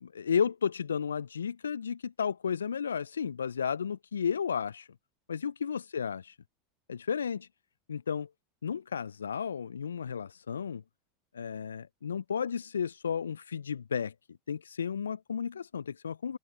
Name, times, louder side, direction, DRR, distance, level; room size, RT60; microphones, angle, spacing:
voice 1, 0.0-4.9 5.3-6.3 6.9-7.5 7.9-8.3 8.6-10.8 11.3-14.1 14.5-16.4, left 7 dB, 80° left, 0.5 m, -33 dB
open air
figure-of-eight pair, 85°, 0 cm